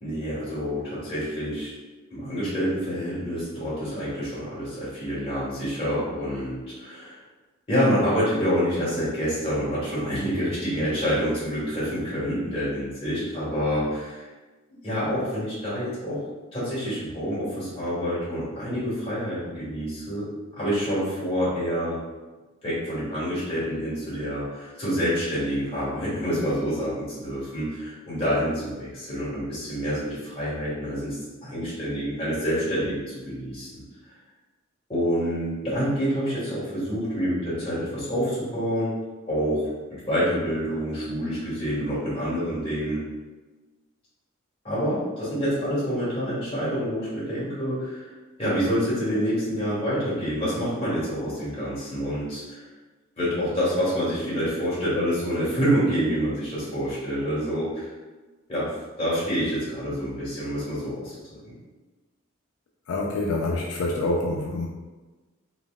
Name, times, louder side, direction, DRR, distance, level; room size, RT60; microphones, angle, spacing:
voice 1, 0.0-1.7 2.1-7.2 7.7-14.3 14.8-16.2 16.5-20.3 20.5-22.0 22.6-31.2 31.4-33.8 34.9-38.9 39.3-39.7 40.1-43.0 44.6-48.1 48.4-52.6 53.2-57.9 58.5-58.7 59.0-61.5, equal, 25° left, -10 dB, 1.4 m, -27 dB
voice 2, 62.9-64.7, left 2 dB, 85° left, -1 dB, 0.4 m, -26 dB
3.9 x 2.0 x 2.3 m, 1.2 s
head